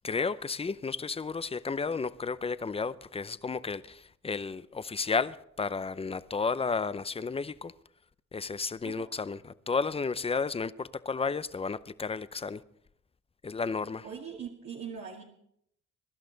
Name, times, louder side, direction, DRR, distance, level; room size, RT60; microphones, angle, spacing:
voice 1, 0.0-7.7 8.3-9.4 9.7-12.6 13.4-14.0, left 4 dB, 20° left, 0.6 m, -32 dB
voice 2, 14.0-15.2, right 7 dB, 60° right, 2.2 m, -41 dB
22.0 x 11.5 x 3.9 m
cardioid pair, 90°, 30 cm